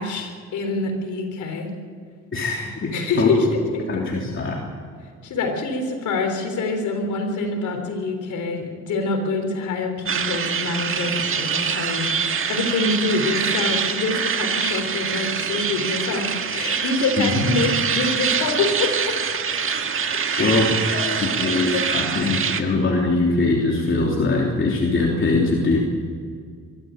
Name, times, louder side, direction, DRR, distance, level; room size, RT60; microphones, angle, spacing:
voice 1, 0.0-1.7 2.9-4.3 5.2-19.2 20.3-20.6 20.9-21.9, left 3 dB, 75° left, 5 dB, 3.8 m, -26 dB
voice 2, 2.3-3.3 3.9-4.7 17.2-17.5 20.4-20.7 21.2-25.8, left 3 dB, 40° left, -2 dB, 3.5 m, -22 dB
sound 1, 10.1-22.6, right 6 dB, 45° right, 1.7 m, -24 dB
23.5 x 13.0 x 9.1 m, 2.1 s
cardioid pair, 90°, 30 cm